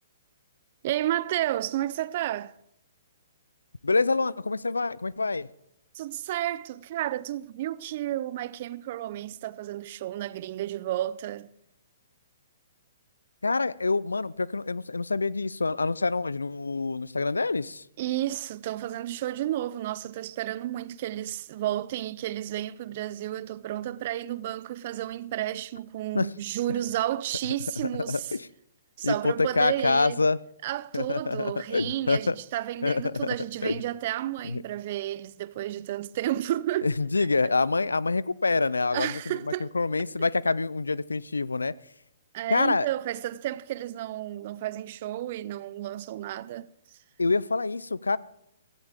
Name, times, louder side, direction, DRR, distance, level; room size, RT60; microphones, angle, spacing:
voice 1, 0.8-2.6 5.9-11.5 18.0-28.4 29.0-30.2 30.6-36.9 37.2-37.3 38.9-39.7 42.3-47.0, right 13 dB, 45° right, 0.5 m, -32 dB
voice 2, 3.8-5.5 13.4-17.8 26.1-26.3 28.1-28.5 29.0-30.4 30.9-32.3 32.8-33.3 33.6-33.8 34.5-34.6 36.8-39.2 39.7-41.7 42.5-42.9 47.2-48.2, left 3 dB, 90° left, 0.4 m, -26 dB
16.0 x 15.0 x 3.6 m
hypercardioid pair, 130°, 0 cm